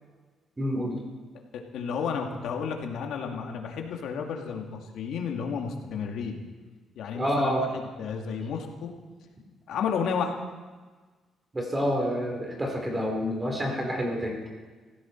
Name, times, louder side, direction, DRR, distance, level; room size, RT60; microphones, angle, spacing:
voice 1, 0.6-1.0 7.1-7.6 11.5-14.4, equal, 20° right, 1 dB, 4.3 m, -28 dB
voice 2, 1.5-6.4 7.0-8.9 9.7-10.3, left 6 dB, 80° left, 2 dB, 2.4 m, -32 dB
18.0 x 16.0 x 4.7 m, 1.4 s
cardioid pair, 90°, 0 cm